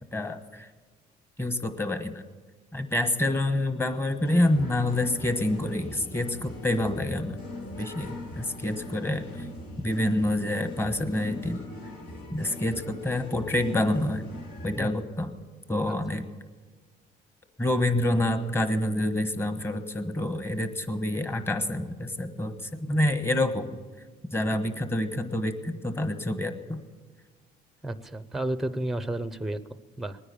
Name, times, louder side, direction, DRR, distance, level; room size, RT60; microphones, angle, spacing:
voice 1, 0.1-0.7 1.4-2.2 2.7-7.4 7.8-9.5 9.8-11.6 12.3-14.3 14.6-15.3 15.7-16.3 17.6-23.7 24.3-26.8, left 1 dB, 15° left, 9 dB, 1.3 m, -27 dB
sound 1, 4.2-14.8, left 2 dB, 85° left, 3.9 m, -41 dB
voice 2, 14.8-15.1 15.9-16.0 27.8-29.6 30.0-30.2, right 1 dB, ahead, 13 dB, 0.6 m, -32 dB
20.0 x 9.8 x 6.9 m, 1.4 s
cardioid pair, 110°, 17 cm